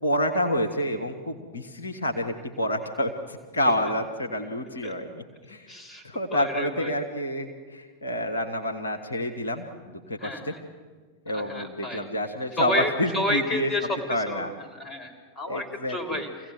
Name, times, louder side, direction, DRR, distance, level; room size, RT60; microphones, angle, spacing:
voice 1, 0.0-5.7 6.0-10.5 11.2-13.7 14.1-14.5 15.4-16.2, left 1 dB, 75° left, 4 dB, 1.5 m, -28 dB
voice 2, 5.7-6.0 6.3-6.9 10.2-10.6 11.3-12.1 12.5-16.5, left 1 dB, 20° left, 5 dB, 3.9 m, -31 dB
25.0 x 16.5 x 7.8 m, 1.5 s
figure-of-eight pair, 90°, 0 cm